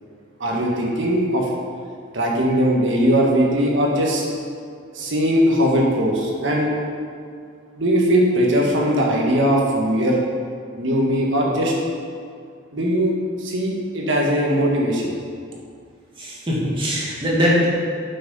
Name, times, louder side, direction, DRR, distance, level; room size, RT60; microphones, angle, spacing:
voice 1, 0.4-1.5 2.1-4.2 4.9-6.7 7.8-10.2 10.8-11.7 12.7-15.1, equal, 70° right, -2 dB, 1.6 m, -20 dB
voice 2, 16.2-17.7, equal, 25° right, -6 dB, 2.1 m, -21 dB
7.9 x 6.0 x 5.5 m, 2.2 s
head